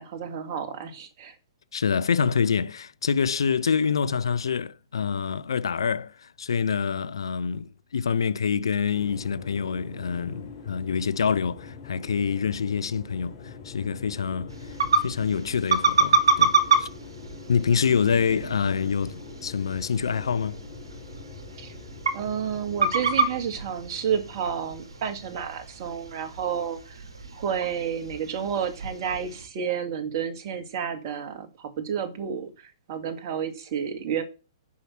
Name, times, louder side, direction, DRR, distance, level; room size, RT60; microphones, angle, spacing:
voice 1, 0.0-1.3 21.6-21.7 22.1-27.0 27.4-32.5 32.9-34.2, right 8 dB, 45° right, 2.2 m, -30 dB
voice 2, 1.7-14.5 15.0-16.9 17.5-20.6, left 6 dB, 70° left, 0.6 m, -26 dB
sound 1, 8.9-27.3, left 5 dB, 50° left, 4.7 m, -44 dB
sound 2, 14.5-29.5, right 3 dB, 75° right, 2.2 m, -28 dB
8.5 x 5.8 x 7.3 m
figure-of-eight pair, 115°, 3 cm